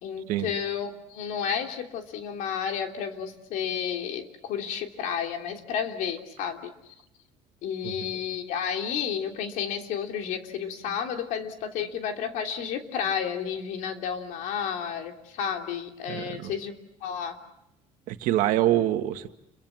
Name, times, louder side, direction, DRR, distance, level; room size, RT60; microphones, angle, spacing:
voice 1, 0.0-6.7 7.6-16.7 17.0-17.4, left 8 dB, 75° left, 4 dB, 3.2 m, -31 dB
voice 2, 16.1-16.5 18.1-19.3, right 13 dB, 75° right, 7 dB, 1.8 m, -25 dB
29.5 x 23.0 x 7.5 m, 0.83 s
cardioid pair, 135°, 14 cm